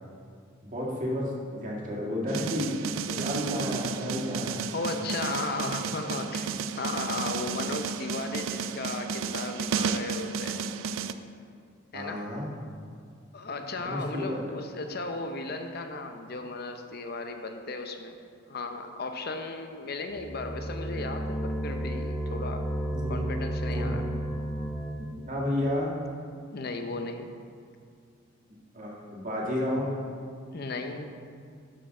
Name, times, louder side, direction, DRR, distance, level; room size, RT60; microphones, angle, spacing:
voice 1, 0.6-4.6 11.9-12.5 13.8-14.4 22.9-23.3 23.6-24.0 25.3-25.9 28.7-29.9, left 1 dB, 40° right, -3 dB, 1.7 m, -31 dB
sound 1, 2.3-11.1, right 6 dB, 75° right, 0.4 m, -32 dB
voice 2, 4.7-10.6 11.9-12.2 13.3-18.2 18.5-22.6 23.1-24.0 26.5-27.3 30.5-31.1, left 3 dB, 50° left, 6 dB, 0.7 m, -35 dB
sound 2, 20.1-25.3, right 1 dB, 5° left, 0.6 m, -32 dB
12.5 x 5.4 x 3.7 m, 2.2 s
head